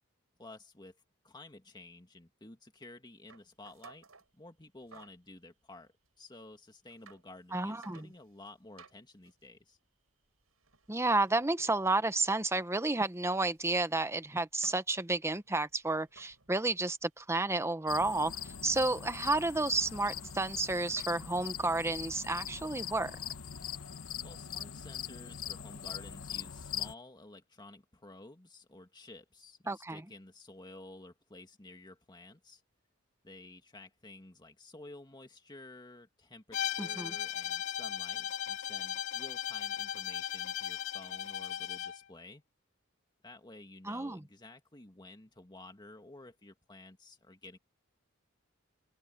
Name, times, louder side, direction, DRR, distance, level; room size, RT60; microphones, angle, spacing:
voice 1, 0.4-1.0 1.2-4.1 4.3-9.8 18.7-19.2 24.2-32.6 33.2-42.4 43.2-47.6, left 2 dB, 20° left, 2.2 m, -52 dB
sound 1, 3.3-4.3 4.8-5.3 6.0-6.1 6.7-7.2 7.6-8.4 8.8-12.8 13.1-17.5 17.8-21.6, right 4 dB, 85° right, 7.7 m, -59 dB
voice 2, 7.5-8.1 10.9-23.2 29.7-30.0 36.8-37.1 43.8-44.2, right 2 dB, 15° right, 1.0 m, -31 dB
sound 2, 17.9-26.9, left 9 dB, 80° left, 1.1 m, -42 dB
Bowed string instrument, 36.5-42.0, left 10 dB, 65° left, 2.6 m, -37 dB
head